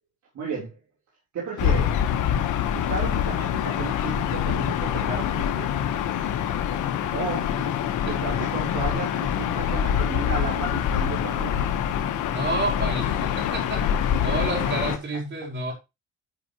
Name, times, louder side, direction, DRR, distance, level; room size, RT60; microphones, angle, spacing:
voice 1, 0.3-0.8 1.3-2.0 2.7-5.7 7.1-7.6 8.1-11.7 14.2-14.3, right 5 dB, 65° right, 3.7 m, -33 dB
Gull seagull / Ocean, 1.6-15.0, left 9 dB, 85° left, 1.3 m, -25 dB
voice 2, 12.3-15.7, right 2 dB, 40° right, 5.0 m, -30 dB
12.5 x 5.7 x 3.1 m
cardioid pair, 90°, 30 cm